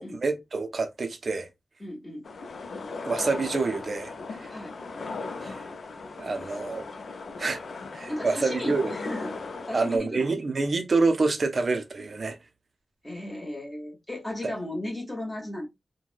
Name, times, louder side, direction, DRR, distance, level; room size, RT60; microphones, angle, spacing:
voice 1, 0.0-1.5 3.0-4.5 5.4-5.7 6.2-6.8 7.4-7.6 7.9-8.9 9.7-12.4 14.4-14.5, right 3 dB, 45° right, 0.5 m, -27 dB
voice 2, 1.8-2.3 4.5-4.8 6.4-6.5 8.1-9.3 9.7-10.4 13.0-15.7, left 1 dB, 15° left, 1.0 m, -35 dB
sound 1, 2.2-10.0, left 3 dB, 70° left, 0.4 m, -38 dB
3.2 x 2.2 x 2.4 m
wide cardioid pair, 150°, 0 cm